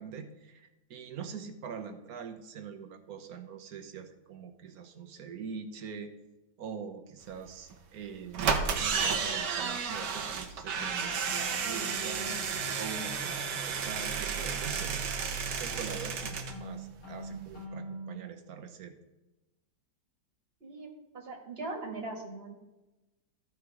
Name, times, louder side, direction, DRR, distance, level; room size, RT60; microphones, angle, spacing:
voice 1, 0.0-6.1 6.6-12.4 12.8-15.0 15.6-18.9, right 6 dB, 65° right, 7 dB, 1.3 m, -43 dB
sound 1, 7.7-7.8 8.3-16.6 16.9-17.0 17.2-17.3, right 6 dB, 90° right, 1.5 m, -32 dB
sound 2, 10.8-18.2, equal, 60° left, 2.2 m, -44 dB
voice 2, 20.6-22.6, right 2 dB, 35° right, 1 dB, 1.9 m, -40 dB
13.5 x 5.0 x 4.7 m, 1.0 s
omnidirectional pair, 1.8 m